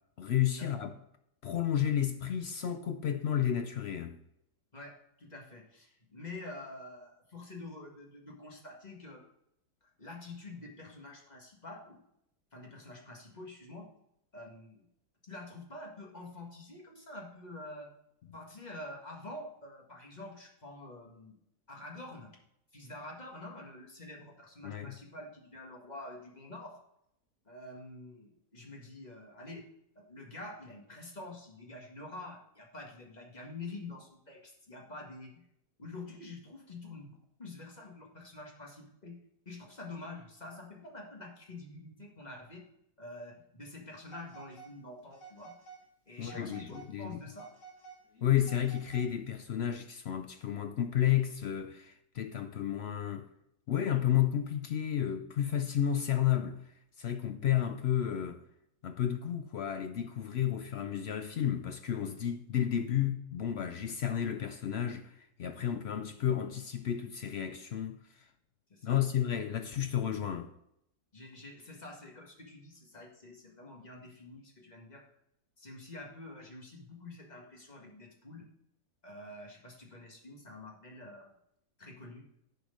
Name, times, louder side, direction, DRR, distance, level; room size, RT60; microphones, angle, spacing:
voice 1, 0.2-0.9 1.4-4.2 24.6-24.9 46.2-47.2 48.2-53.3 53.7-56.6 57.0-58.4 58.8-68.0 68.8-70.5, left 10 dB, 65° left, 0.6 m, -32 dB
voice 2, 4.7-9.3 9.8-12.0 12.5-13.9 14.3-14.8 15.2-17.9 18.3-21.4 21.7-22.4 22.7-26.8 27.4-29.7 29.9-35.4 35.8-39.2 39.4-42.6 43.0-45.5 46.0-47.5 68.7-69.0 71.1-75.0 75.6-78.5 79.0-81.3 81.8-82.3, left 2 dB, 25° left, 1.8 m, -47 dB
Telephone, 44.0-44.7 45.1-45.8 46.2-46.9 47.3-49.3, right 6 dB, 50° left, 2.7 m, -52 dB
11.0 x 4.7 x 5.2 m
omnidirectional pair, 1.7 m